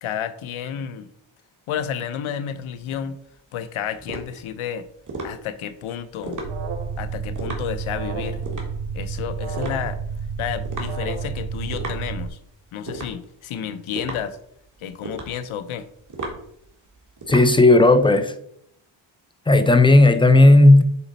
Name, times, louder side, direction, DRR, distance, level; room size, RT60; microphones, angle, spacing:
voice 1, 0.0-1.1 1.7-3.2 3.5-4.9 5.2-6.4 7.0-8.4 8.9-10.0 10.4-12.4 12.7-14.4 14.8-15.9, left 9 dB, 90° left, 0.7 m, -31 dB
Tapping Fingers, 2.6-18.1, right 2 dB, 40° right, 1.7 m, -37 dB
Alarm, 6.4-12.3, right 5 dB, 85° right, 0.8 m, -30 dB
voice 2, 17.3-18.3 19.5-20.8, left 2 dB, 10° left, 0.5 m, -13 dB
7.1 x 4.1 x 4.0 m
cardioid pair, 100°, 48 cm